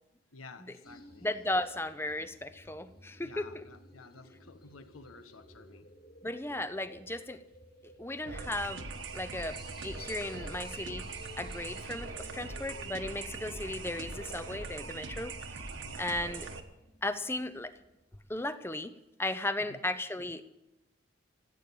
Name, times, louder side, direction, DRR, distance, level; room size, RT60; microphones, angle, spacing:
voice 1, 0.3-1.3 3.2-5.9 15.8-16.1 19.7-19.8, left 3 dB, 90° left, 1.2 m, -52 dB
sound 1, 0.8-18.0, left 1 dB, 45° left, 2.1 m, -55 dB
voice 2, 1.2-3.6 6.2-7.4 8.0-8.9 9.1-11.1 11.4-15.3 16.0-16.5 17.0-17.7 18.3-18.9 19.2-20.4, left 1 dB, 10° left, 0.6 m, -35 dB
sound 2, 8.3-16.6, right 4 dB, 65° right, 1.3 m, -41 dB
16.0 x 9.0 x 8.5 m
head